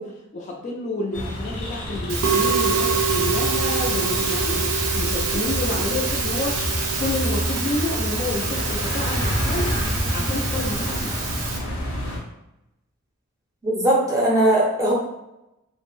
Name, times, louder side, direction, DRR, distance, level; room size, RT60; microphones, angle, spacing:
voice 1, 0.0-6.6 7.0-9.8 10.1-11.2, left 2 dB, 35° left, -1 dB, 0.3 m, -29 dB
sound 1, 1.1-12.2, equal, 80° left, 0.8 m, -28 dB
Musical instrument, 2.1-11.6, right 5 dB, 80° right, 0.5 m, -25 dB
voice 2, 13.6-14.9, right 1 dB, 15° right, -4 dB, 0.5 m, -19 dB
2.5 x 2.0 x 3.1 m, 0.91 s
head